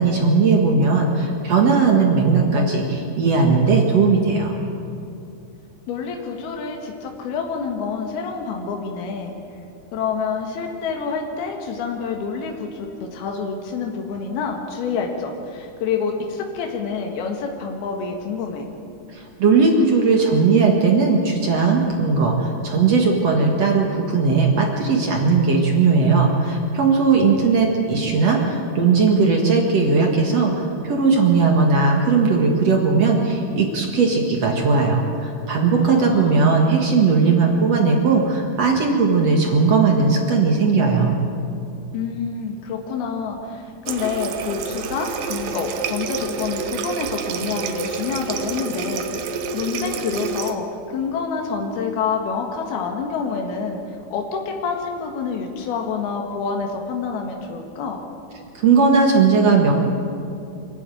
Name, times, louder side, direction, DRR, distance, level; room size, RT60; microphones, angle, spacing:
voice 1, 0.0-4.5 19.1-41.2 58.5-59.7, right 4 dB, 50° right, 0 dB, 2.3 m, -18 dB
voice 2, 5.9-9.3 9.9-18.7 35.8-36.5 41.9-58.0, left 5 dB, 75° left, 2 dB, 3.5 m, -27 dB
Water tap faucet, 43.9-50.6, right 5 dB, 70° right, 2.5 m, -28 dB
25.5 x 11.5 x 9.1 m, 2.6 s
omnidirectional pair, 4.5 m